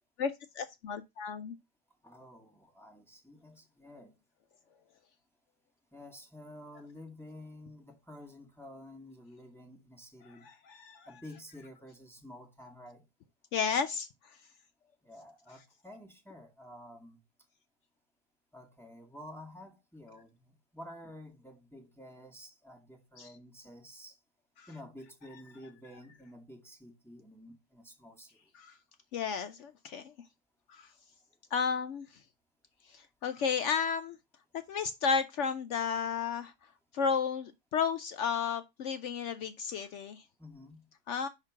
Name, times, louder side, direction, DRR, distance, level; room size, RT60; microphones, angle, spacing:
voice 1, 0.6-1.5 10.2-11.1 13.5-14.1 23.2-23.3 24.6-24.7 28.5-28.7 29.1-30.0 30.7-30.9 31.5-32.1 32.9-34.2 34.7-36.5 36.9-40.2 41.1-41.3, left 6 dB, 75° left, 0.7 m, -33 dB
voice 2, 2.0-4.1 5.9-10.5 11.1-13.0 15.0-17.2 18.5-24.2 24.7-28.4 32.9-33.0 40.4-40.9, left 1 dB, ahead, 0.9 m, -50 dB
5.8 x 2.9 x 5.6 m
omnidirectional pair, 1.7 m